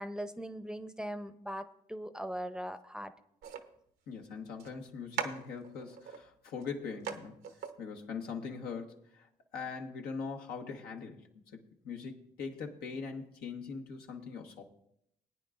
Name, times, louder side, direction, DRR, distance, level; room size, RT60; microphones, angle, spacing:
voice 1, 0.0-3.1, equal, 5° right, 11 dB, 0.6 m, -40 dB
sound 1, 3.4-3.6 4.6-4.7 5.1-6.2 6.6-6.7 7.0-7.2 7.4-7.7, right 7 dB, 85° right, 0.9 m, -39 dB
voice 2, 4.1-7.4 7.8-14.6, left 5 dB, 85° left, 2 dB, 1.2 m, -42 dB
19.5 x 9.1 x 2.5 m, 0.73 s
supercardioid pair, 65°, 16 cm